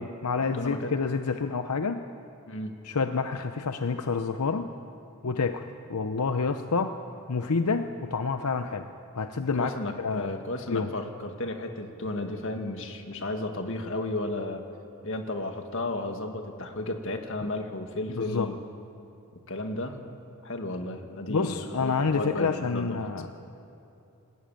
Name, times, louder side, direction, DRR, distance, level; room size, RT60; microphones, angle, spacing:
voice 1, 0.0-2.0 2.8-4.7 5.2-7.0 7.3-8.9 9.1-9.7 10.0-10.3 10.7-10.9 18.1-18.5 21.3-23.3, left 4 dB, 90° left, 8 dB, 0.8 m, -28 dB
voice 2, 0.5-0.9 2.5-2.8 9.5-14.7 15.0-18.6 19.5-20.0 20.4-23.0, left 2 dB, 60° left, 5 dB, 1.9 m, -33 dB
20.5 x 16.0 x 9.1 m, 2.8 s
head